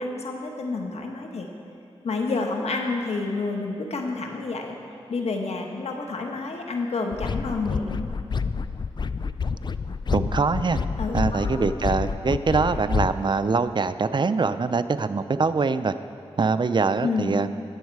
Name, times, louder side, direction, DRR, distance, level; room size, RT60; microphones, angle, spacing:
voice 1, 0.0-1.5 2.0-4.8 5.1-8.1 11.0-11.5 17.0-17.3, left 3 dB, 85° left, 2 dB, 1.2 m, -29 dB
sound 1, 7.1-13.1, left 5 dB, 45° left, 0.4 m, -28 dB
voice 2, 10.1-10.8 11.1-15.9 16.4-17.5, right 4 dB, 45° right, 12 dB, 0.5 m, -23 dB
18.5 x 7.3 x 4.7 m, 2.6 s
cardioid pair, 60°, 11 cm